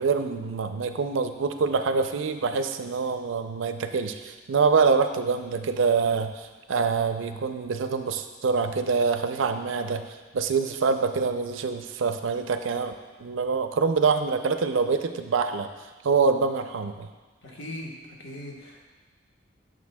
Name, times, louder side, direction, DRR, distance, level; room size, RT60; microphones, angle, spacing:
voice 1, 0.0-10.1 10.3-12.9 13.2-15.7 16.0-17.1, right 5 dB, 85° right, 8 dB, 0.4 m, -25 dB
voice 2, 17.4-17.9 18.2-18.9, left 1 dB, 75° left, -2 dB, 1.2 m, -39 dB
9.4 x 6.6 x 2.2 m, 1.3 s
head